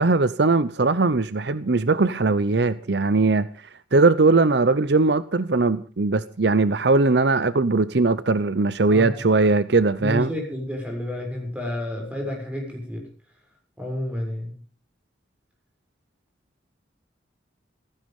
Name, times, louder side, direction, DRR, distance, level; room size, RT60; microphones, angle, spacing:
voice 1, 0.0-3.5 3.9-10.3, right 3 dB, 65° right, 0.7 m, -20 dB
voice 2, 8.9-9.5 10.0-13.0 13.8-14.6, left 1 dB, 5° right, 7.0 m, -30 dB
16.0 x 15.0 x 5.4 m
head